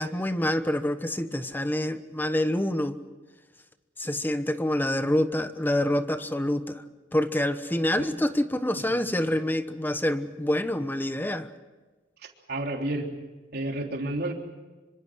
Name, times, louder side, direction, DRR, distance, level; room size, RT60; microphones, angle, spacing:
voice 1, 0.0-3.0 4.0-6.8 7.1-11.5, left 1 dB, 10° left, 10 dB, 1.1 m, -27 dB
voice 2, 12.2-13.1 13.5-14.3, right 1 dB, 60° right, 2 dB, 3.5 m, -31 dB
26.0 x 25.0 x 6.3 m, 1.2 s
head